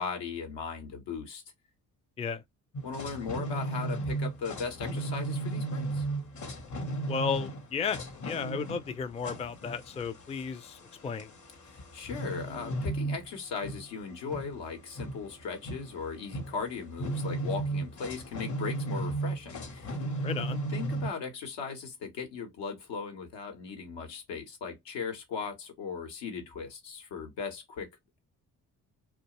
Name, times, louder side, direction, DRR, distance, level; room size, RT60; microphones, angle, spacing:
voice 1, 0.0-1.4 2.8-6.1 11.6-20.0 20.7-27.9, left 5 dB, 80° left, 1.0 m, -38 dB
sound 1, 2.7-21.1, right 2 dB, 45° left, 0.8 m, -35 dB
voice 2, 7.1-10.8 11.0-11.3 20.2-20.6, left 6 dB, 15° left, 0.4 m, -34 dB
2.4 x 2.2 x 2.9 m
supercardioid pair, 50°, 43 cm